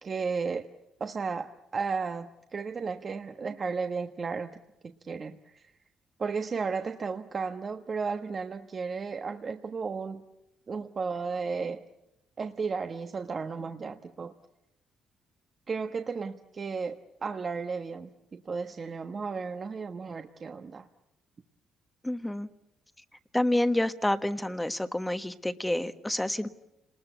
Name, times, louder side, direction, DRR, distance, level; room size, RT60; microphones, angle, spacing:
voice 1, 0.0-0.7 1.0-5.7 6.2-10.2 10.7-11.8 12.4-14.3 15.7-20.9, right 5 dB, 40° right, 6 dB, 1.2 m, -34 dB
voice 2, 22.0-22.5 23.3-26.5, left 1 dB, 10° left, 10 dB, 1.3 m, -28 dB
29.5 x 20.0 x 8.2 m, 0.89 s
cardioid pair, 90°, 0 cm